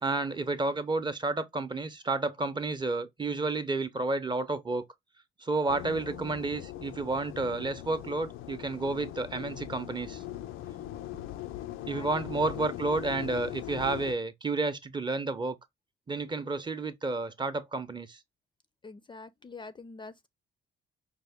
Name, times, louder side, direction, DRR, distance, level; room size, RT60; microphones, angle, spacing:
voice 1, 0.0-4.8 5.4-10.2 11.9-15.6 16.1-18.2, right 3 dB, 25° right, 0.6 m, -31 dB
sound 1, 5.7-14.1, left 13 dB, 85° left, 0.4 m, -40 dB
voice 2, 11.6-12.1 12.5-12.7 18.8-20.3, left 3 dB, 25° left, 0.4 m, -46 dB
5.0 x 2.1 x 3.4 m
cardioid pair, 90°, 20 cm